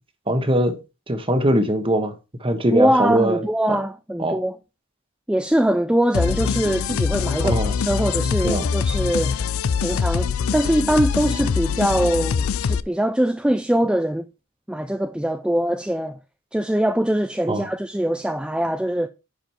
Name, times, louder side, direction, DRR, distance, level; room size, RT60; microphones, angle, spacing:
voice 1, 0.3-0.8 1.1-2.1 2.4-3.8 4.2-4.4 7.4-7.7 8.4-8.7 17.5-17.7, right 1 dB, 25° right, 1.3 m, -21 dB
voice 2, 2.7-4.6 5.3-9.3 9.8-14.3 14.7-16.2 16.5-19.1, right 1 dB, 5° right, 0.4 m, -22 dB
sound 1, 6.1-12.8, left 6 dB, 75° left, 0.4 m, -23 dB
10.5 x 5.1 x 4.5 m
head